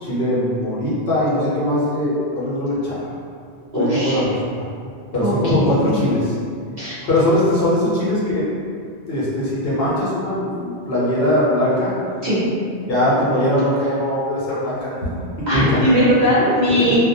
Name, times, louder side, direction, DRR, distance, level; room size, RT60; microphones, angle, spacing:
voice 1, 0.0-3.1 3.7-4.3 5.1-6.3 7.0-8.4 9.1-11.9 12.9-15.1 15.4-15.8, left 1 dB, 65° left, -7 dB, 0.8 m, -20 dB
voice 2, 3.7-4.2 5.2-6.1 6.8-7.0 12.2-12.4 15.5-17.0, equal, 50° right, -10 dB, 0.6 m, -19 dB
2.3 x 2.1 x 2.6 m, 2.2 s
omnidirectional pair, 1.1 m